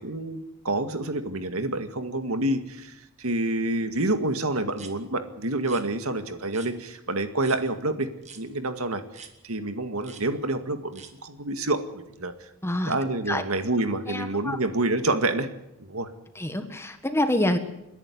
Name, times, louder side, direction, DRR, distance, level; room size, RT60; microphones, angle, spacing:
voice 1, 0.0-8.1 8.4-12.5 12.9-15.5 15.8-16.1, right 2 dB, 80° right, 8 dB, 2.0 m, -28 dB
sound 1, 4.7-4.9 5.6-5.8 6.5-6.7 7.4-7.6 8.2-8.4 9.1-9.3 10.0-10.2 10.9-11.1, right 6 dB, 30° right, 2.0 m, -45 dB
voice 2, 12.6-12.9 13.3-13.4 14.1-14.6 16.3-17.6, left 1 dB, 10° left, 8 dB, 1.5 m, -26 dB
29.0 x 11.0 x 9.5 m, 0.89 s
head